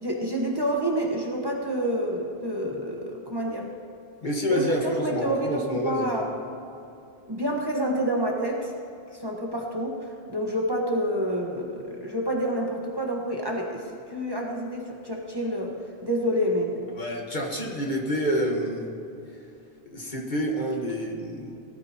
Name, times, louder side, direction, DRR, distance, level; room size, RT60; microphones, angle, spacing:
voice 1, 0.0-3.7 4.5-6.3 7.3-8.7 9.1-15.7 16.0-16.9, equal, 25° right, -1 dB, 1.4 m, -28 dB
voice 2, 4.2-6.1 16.9-18.8 19.9-21.6, equal, 50° left, -1 dB, 1.6 m, -28 dB
18.5 x 13.0 x 3.0 m, 2.8 s
omnidirectional pair, 1.1 m